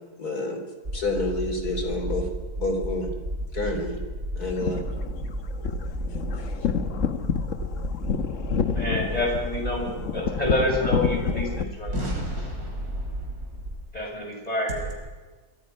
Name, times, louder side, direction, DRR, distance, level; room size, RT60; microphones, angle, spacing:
voice 1, 0.2-0.6 0.9-2.3 2.6-3.1 3.5-4.0 4.4-4.8, left 2 dB, 75° left, 5 dB, 3.8 m, -28 dB
sound 1, 0.8-13.8, equal, 40° right, 4.1 m, -33 dB
sound 2, 4.4-11.6, left 6 dB, 55° left, 1.3 m, -29 dB
voice 2, 8.7-11.9 13.9-14.8, left 1 dB, 25° left, 0 dB, 6.0 m, -28 dB
voice 3, 11.9-13.5 14.7-14.9, right 1 dB, 65° right, 1 dB, 6.2 m, -34 dB
26.0 x 24.5 x 5.4 m, 1.3 s
omnidirectional pair, 1.7 m